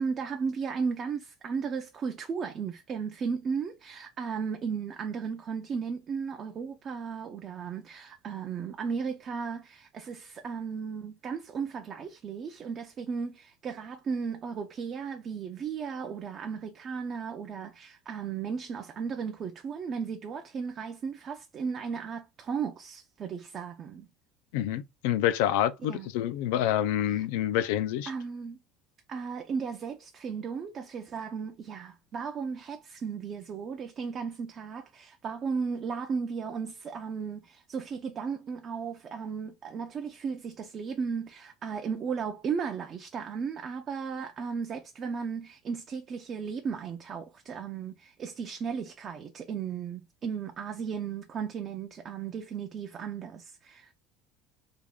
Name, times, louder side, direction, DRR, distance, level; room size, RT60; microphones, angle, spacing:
voice 1, 0.0-24.1 25.9-26.1 27.1-27.3 28.1-28.6 29.1-53.9, right 6 dB, 30° right, 0.4 m, -35 dB
voice 2, 24.5-28.1, left 11 dB, 85° left, 0.4 m, -27 dB
3.4 x 2.3 x 3.5 m
cardioid pair, 165°, 0 cm